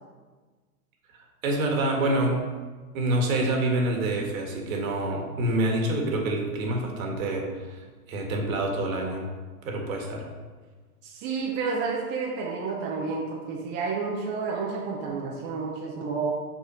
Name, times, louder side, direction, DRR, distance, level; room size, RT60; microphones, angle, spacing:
voice 1, 1.1-2.4 2.9-9.3 9.6-10.3, right 1 dB, 60° right, 1 dB, 1.6 m, -27 dB
voice 2, 11.0-16.3, right 4 dB, 25° right, -1 dB, 0.6 m, -30 dB
5.8 x 4.0 x 4.9 m, 1.4 s
hypercardioid pair, 140°, 47 cm